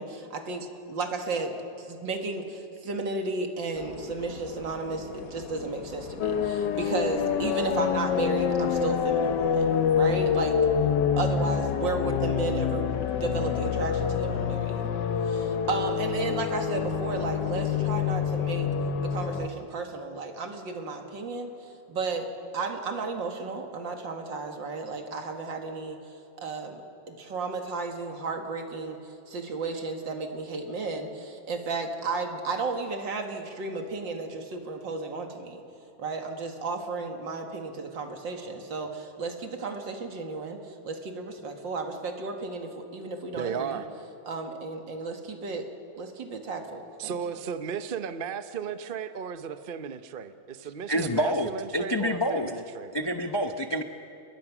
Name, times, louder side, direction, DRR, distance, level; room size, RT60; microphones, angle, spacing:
voice 1, 0.0-10.6 11.2-14.9 15.2-18.7 19.0-22.3 22.5-26.0 26.4-35.6 36.0-43.8 44.3-45.7 46.0-47.2, right 3 dB, 75° right, 4 dB, 2.6 m, -33 dB
sound 1, 3.7-10.3, left 5 dB, 50° left, 1.5 m, -43 dB
sound 2, 6.2-19.5, left 7 dB, 70° left, 1.5 m, -27 dB
voice 2, 43.3-43.9 47.0-52.9, right 7 dB, 45° right, 10 dB, 0.7 m, -35 dB
voice 3, 50.9-52.5 52.9-53.8, equal, 35° left, 5 dB, 0.4 m, -27 dB
29.5 x 21.5 x 6.1 m, 2.7 s
omnidirectional pair, 2.1 m